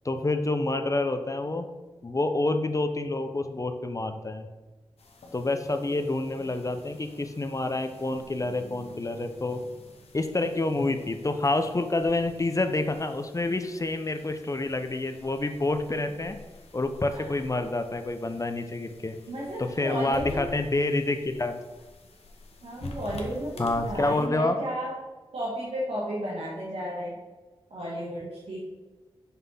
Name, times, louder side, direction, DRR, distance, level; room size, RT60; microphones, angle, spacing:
voice 1, 0.0-1.7 2.0-4.5 5.3-9.6 10.1-16.4 16.7-19.2 19.6-21.6 23.6-24.6, left 2 dB, 30° left, 8 dB, 0.6 m, -28 dB
sound 1, 5.0-24.3, left 1 dB, 75° left, 1.0 m, -47 dB
voice 2, 19.3-20.5 22.6-24.9 25.3-27.2 27.7-28.6, equal, 75° right, -6 dB, 1.5 m, -33 dB
5.6 x 3.7 x 5.6 m, 1.2 s
cardioid pair, 50°, 10 cm